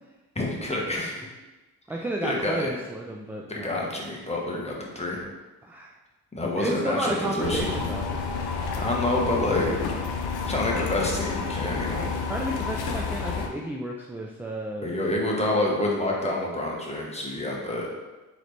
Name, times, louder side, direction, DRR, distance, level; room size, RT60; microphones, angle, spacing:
voice 1, 0.3-1.3 2.2-2.7 3.5-5.2 6.3-7.7 8.8-9.8 10.4-12.1 14.8-17.9, left 1 dB, 15° left, -2 dB, 1.1 m, -27 dB
voice 2, 1.9-3.8 5.6-6.0 6.6-8.3 12.3-14.9 15.5-16.0, right 1 dB, 5° right, -1 dB, 0.3 m, -32 dB
sound 1, 7.4-13.5, left 5 dB, 80° left, 0.6 m, -30 dB
3.9 x 3.1 x 3.3 m, 1.1 s
cardioid pair, 65°, 37 cm